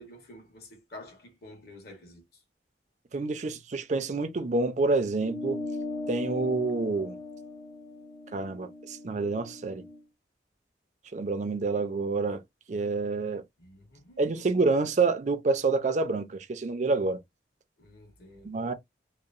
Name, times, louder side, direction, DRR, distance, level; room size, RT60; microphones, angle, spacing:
voice 1, 0.0-2.2 13.6-14.5 17.8-18.6, left 1 dB, 60° left, 1.2 m, -49 dB
voice 2, 3.1-5.6 6.1-7.2 8.3-9.8 11.1-12.4 12.7-13.4 14.2-17.2 18.4-18.7, right 3 dB, 40° right, 0.4 m, -28 dB
sound 1, 5.2-10.0, left 2 dB, 30° left, 0.5 m, -39 dB
2.8 x 2.0 x 2.4 m
head